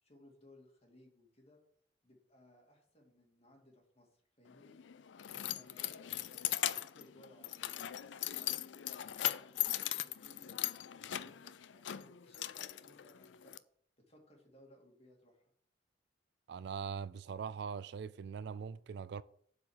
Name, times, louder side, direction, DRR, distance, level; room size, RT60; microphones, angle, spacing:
voice 1, 0.0-1.6 2.0-4.8 5.5-7.8 8.2-13.6 14.1-15.5, left 1 dB, 35° left, 2.4 m, -63 dB
Keys jangling, 4.5-13.6, left 13 dB, 85° left, 0.4 m, -39 dB
voice 2, 16.5-19.2, right 6 dB, 65° right, 0.4 m, -41 dB
7.8 x 4.8 x 7.2 m
head